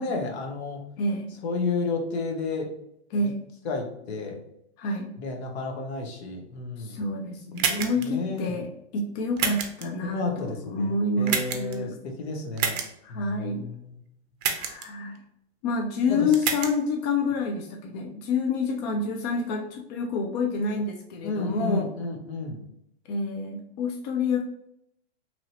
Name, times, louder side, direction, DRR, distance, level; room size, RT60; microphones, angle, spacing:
voice 1, 0.0-0.8 1.4-2.7 3.2-3.3 3.6-4.4 5.2-7.0 8.0-8.6 10.0-12.8 13.1-13.9 16.1-16.3 21.2-22.6, left 3 dB, 70° left, 2 dB, 0.9 m, -31 dB
voice 2, 1.0-1.3 3.1-3.4 4.8-5.1 6.8-12.0 13.0-13.7 14.5-15.2 15.6-21.9 23.1-24.4, left 3 dB, 40° left, 2 dB, 0.4 m, -28 dB
sound 1, 7.6-8.1 9.4-9.8 11.3-11.7 12.6-12.9 14.4-14.9 16.3-16.7, right 7 dB, 40° right, 0.5 m, -27 dB
2.9 x 2.6 x 2.8 m, 0.76 s
hypercardioid pair, 125°, 34 cm